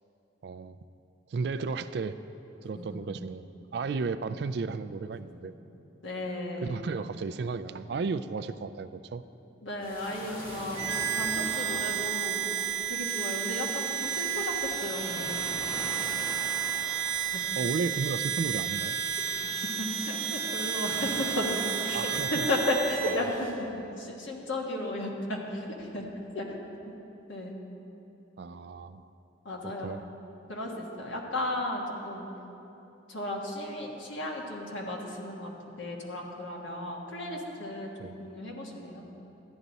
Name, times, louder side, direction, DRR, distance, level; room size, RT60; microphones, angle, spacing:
voice 1, 0.4-0.8 1.3-2.2 2.6-3.4 3.7-5.5 6.6-9.2 17.6-18.9 21.9-22.5 23.1-23.2 28.4-29.1 29.8-30.0 38.0-38.2, right 4 dB, 55° right, 12 dB, 0.3 m, -33 dB
voice 2, 6.0-6.9 9.6-12.5 12.9-15.7 17.2-17.8 19.8-23.5 24.0-26.1 26.3-26.4 26.8-26.9 27.3-27.6 29.4-30.0 30.5-32.3 33.1-37.9 38.2-39.0, left 1 dB, 80° left, -1 dB, 1.5 m, -34 dB
sound 1, 9.8-23.5, equal, 50° left, 2.2 m, -43 dB
Harmonica, 10.8-23.2, right 9 dB, 80° right, 0.8 m, -32 dB
13.0 x 10.0 x 4.0 m, 3.0 s
head